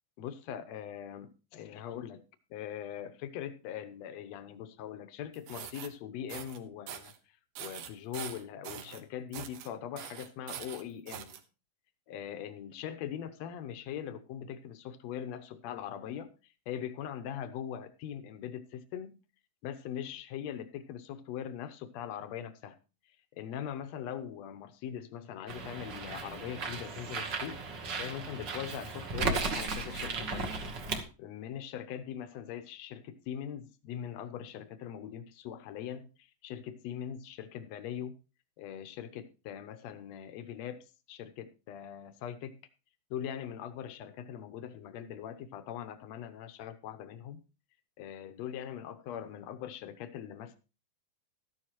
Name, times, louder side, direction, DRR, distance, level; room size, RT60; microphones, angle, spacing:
voice 1, 0.2-2.2 2.5-11.4 12.1-19.2 19.6-22.8 23.0-30.6 31.2-38.2 38.6-42.6 43.1-47.4 48.0-50.6, left 9 dB, 75° left, 10 dB, 1.5 m, -41 dB
sound 1, 5.3-5.9 6.3-6.6 6.9-7.2 7.6-9.0 9.3-9.7 10.0-11.4, right 10 dB, 80° right, 2.9 m, -43 dB
Bird, 25.5-31.0, right 3 dB, 60° right, 1.1 m, -35 dB
13.0 x 11.5 x 3.0 m, 0.32 s
omnidirectional pair, 4.3 m